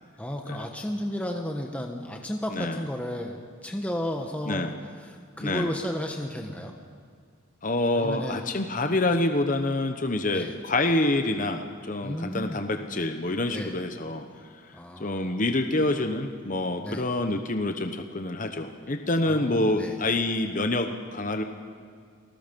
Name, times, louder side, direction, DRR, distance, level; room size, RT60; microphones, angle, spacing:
voice 1, 0.2-4.7 5.0-6.7 8.0-8.4 10.3-10.5 12.0-12.6 13.5-13.8 14.7-15.4 16.8-17.1 19.3-20.0, equal, 5° left, 2 dB, 1.2 m, -33 dB
voice 2, 2.5-2.8 4.5-4.7 5.4-5.7 7.6-14.2 15.0-21.4, left 2 dB, 40° left, 6 dB, 1.0 m, -27 dB
28.5 x 20.0 x 5.4 m, 2.2 s
head